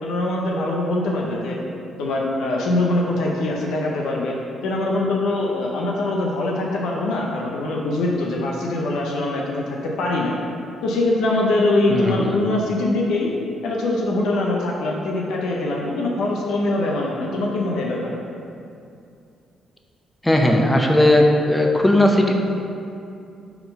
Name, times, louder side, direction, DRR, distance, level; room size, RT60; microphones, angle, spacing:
voice 1, 0.0-1.6 2.0-4.3 4.6-10.3 10.8-13.3 13.6-18.2, left 2 dB, 80° left, -2 dB, 0.7 m, -23 dB
voice 2, 11.9-12.4 20.2-22.4, left 1 dB, 10° left, 2 dB, 0.6 m, -17 dB
4.6 x 3.9 x 5.3 m, 2.5 s
cardioid pair, 90°, 0 cm